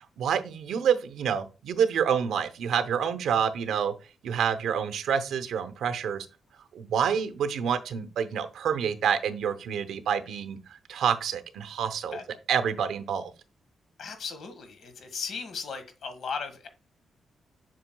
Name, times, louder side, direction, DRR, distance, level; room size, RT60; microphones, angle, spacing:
voice 1, 0.2-3.9 4.2-6.3 6.7-10.6 10.9-12.2 12.5-13.3, right 7 dB, 85° right, 0.7 m, -27 dB
voice 2, 14.0-16.7, left 5 dB, 65° left, 1.5 m, -36 dB
7.5 x 6.1 x 2.2 m
cardioid pair, 135°, 0 cm